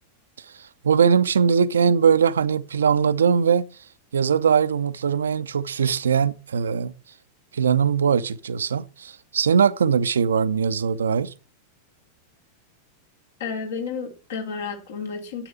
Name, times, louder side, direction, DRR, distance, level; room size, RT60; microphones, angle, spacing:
voice 1, 0.6-3.7 4.1-6.9 7.5-11.3, right 6 dB, 70° right, 0.7 m, -21 dB
voice 2, 13.4-15.5, left 5 dB, 60° left, 3.4 m, -31 dB
9.9 x 8.8 x 7.2 m
figure-of-eight pair, 90°, 0 cm